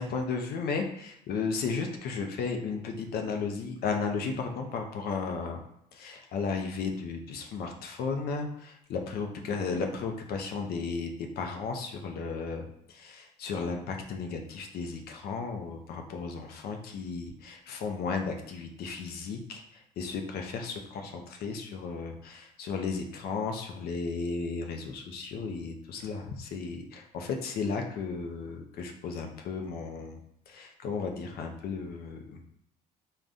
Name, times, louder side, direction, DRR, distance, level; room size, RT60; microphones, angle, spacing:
voice 1, 0.0-5.6 5.9-30.2 30.5-32.4, left 5 dB, 65° left, 4 dB, 0.5 m, -34 dB
3.5 x 2.2 x 2.5 m, 0.76 s
cardioid pair, 110°, 17 cm